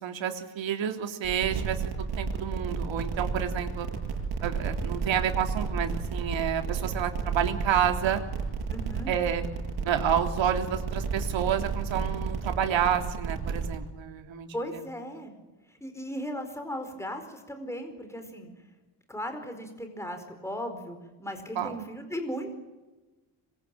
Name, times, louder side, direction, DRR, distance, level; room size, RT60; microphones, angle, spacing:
voice 1, 0.0-3.9 4.4-8.2 9.1-9.4 9.8-14.5 14.7-14.9 21.6-21.8, right 9 dB, 75° right, 5 dB, 3.5 m, -29 dB
sound 1, 1.2-13.8, right 5 dB, 55° right, 7.7 m, -32 dB
voice 2, 8.7-9.1 14.5-15.3 15.7-18.5 19.1-22.6, equal, 5° left, 6 dB, 4.5 m, -37 dB
26.0 x 23.0 x 9.1 m, 1.1 s
cardioid pair, 145°, 46 cm